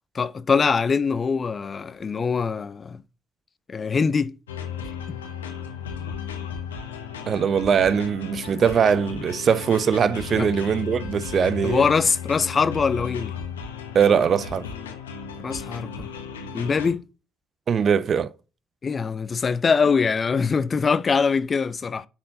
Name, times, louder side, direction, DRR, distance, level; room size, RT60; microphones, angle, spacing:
voice 1, 0.1-3.0 3.7-4.3 10.4-10.5 11.6-13.3 15.4-16.1 16.5-17.0 18.8-22.1, left 5 dB, 40° left, 0.5 m, -23 dB
sound 1, 4.5-16.9, left 7 dB, 90° left, 1.1 m, -35 dB
voice 2, 7.3-11.9 13.9-14.7 17.7-18.3, right 7 dB, 50° right, 0.5 m, -21 dB
10.0 x 4.5 x 3.8 m
hypercardioid pair, 50°, 0 cm